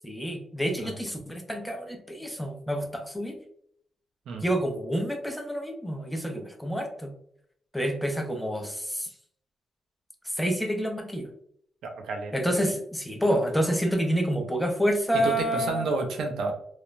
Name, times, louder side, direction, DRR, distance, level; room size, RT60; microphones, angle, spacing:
voice 1, 0.0-3.4 4.4-7.1 7.7-9.1 10.2-11.3 12.3-15.8, equal, 5° left, 3 dB, 0.4 m, -28 dB
voice 2, 11.8-12.3 15.1-16.5, right 4 dB, 85° right, 3 dB, 0.4 m, -30 dB
3.1 x 2.0 x 2.4 m, 0.66 s
cardioid pair, 125°, 0 cm